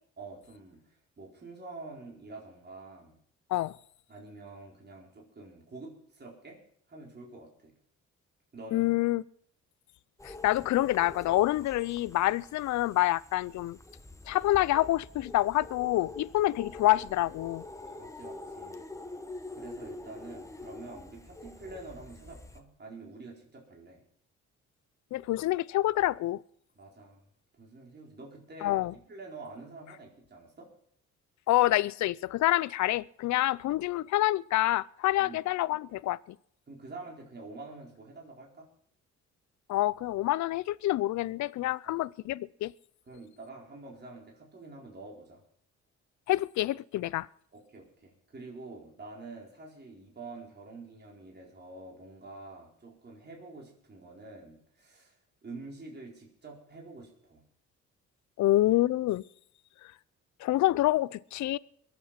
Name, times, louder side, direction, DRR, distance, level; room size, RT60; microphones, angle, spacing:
voice 1, 0.2-3.1 4.1-6.6 6.9-7.7 8.5-8.9 18.0-18.8 19.5-24.0 26.8-27.2 27.6-28.7 29.1-30.7 35.2-35.4 36.7-38.7 41.8-42.0 43.1-45.4 47.5-57.4, right 3 dB, 35° right, 4.4 m, -47 dB
voice 2, 8.7-9.2 10.2-13.8 14.3-17.6 25.1-26.4 28.6-28.9 31.5-36.4 39.7-42.7 46.3-47.3 58.4-59.2 60.4-61.6, left 16 dB, 70° left, 0.5 m, -27 dB
sound 1, 10.2-22.6, left 2 dB, 10° left, 1.2 m, -46 dB
22.0 x 8.3 x 5.8 m
cardioid pair, 90°, 30 cm